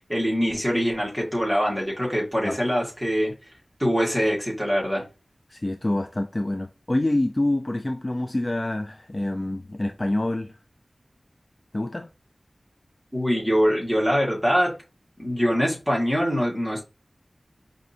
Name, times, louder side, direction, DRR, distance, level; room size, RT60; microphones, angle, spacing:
voice 1, 0.1-3.3 3.8-5.0 13.1-14.7 15.2-16.8, equal, 5° right, 1.7 m, -23 dB
voice 2, 5.5-10.6 11.7-12.1, left 1 dB, 35° left, 0.3 m, -26 dB
5.0 x 2.6 x 2.7 m
wide cardioid pair, 70°, 0 cm